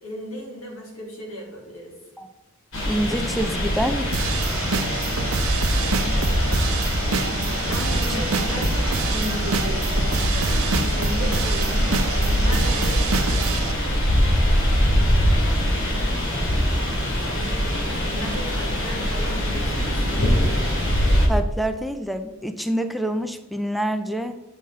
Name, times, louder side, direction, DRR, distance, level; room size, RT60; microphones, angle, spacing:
voice 1, 0.0-1.9 7.6-13.1 17.2-20.6, equal, 90° left, -2 dB, 2.8 m, -35 dB
sound 1, 2.7-21.3, equal, 65° left, 2.5 m, -23 dB
voice 2, 2.9-4.1 8.6-8.7 21.3-24.4, right 1 dB, ahead, 7 dB, 0.4 m, -26 dB
sound 2, 4.1-13.7, right 4 dB, 85° right, 0.8 m, -26 dB
9.0 x 7.1 x 3.6 m, 1.1 s
head